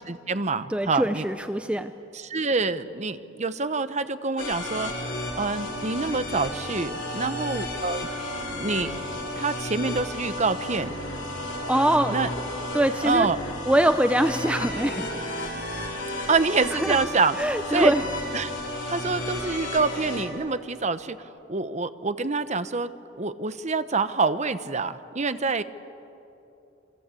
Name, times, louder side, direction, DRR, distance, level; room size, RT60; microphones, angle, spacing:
voice 1, 0.1-1.3 2.1-4.9 5.4-8.1 8.5-8.9 9.4-10.9 12.1-12.3 13.0-13.4 16.1-17.4 17.7-17.9 18.3-22.9 23.2-25.6, right 4 dB, 40° right, 12 dB, 1.0 m, -26 dB
voice 2, 0.7-1.9 11.7-12.2 12.7-13.3 13.7-15.0 16.7-17.0 17.4-18.0, right 1 dB, 5° right, 9 dB, 0.6 m, -23 dB
sound 1, 4.4-20.3, left 1 dB, 70° left, 5.3 m, -33 dB
27.5 x 25.0 x 8.4 m, 2.8 s
head